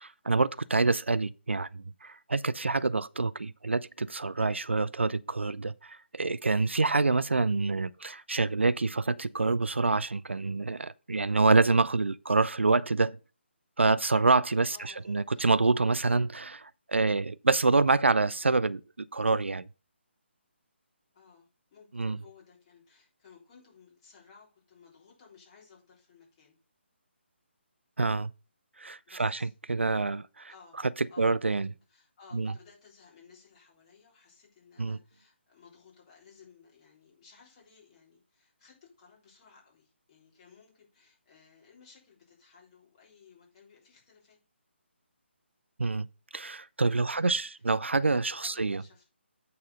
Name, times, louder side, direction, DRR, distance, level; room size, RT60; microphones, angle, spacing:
voice 1, 0.0-13.2 13.8-14.8 15.1-19.7 22.0-22.2 28.0-28.3 28.8-30.5 31.2-31.7 32.3-32.5 34.8-35.0 45.8-46.1 46.3-48.8, right 3 dB, 75° right, 0.4 m, -27 dB
voice 2, 14.7-15.4 21.1-26.6 29.1-29.5 30.5-30.8 31.1-31.4 31.9-44.4 46.8-47.6 48.4-49.1, left 5 dB, 30° left, 3.6 m, -58 dB
8.5 x 4.3 x 5.4 m
figure-of-eight pair, 145°, 7 cm